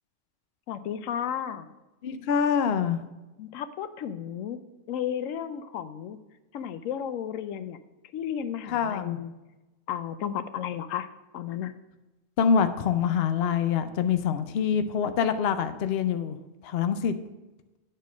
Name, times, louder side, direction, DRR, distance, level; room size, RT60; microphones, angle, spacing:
voice 1, 0.7-1.7 3.4-4.6 4.9-6.2 6.5-7.8 8.1-9.3 9.9-11.1 11.3-11.7, left 9 dB, 85° left, 12 dB, 1.0 m, -33 dB
voice 2, 2.0-3.0 8.7-9.2 12.4-16.4 16.6-17.1, left 7 dB, 60° left, 10 dB, 0.8 m, -25 dB
9.4 x 4.4 x 6.1 m, 1.1 s
omnidirectional pair, 1.3 m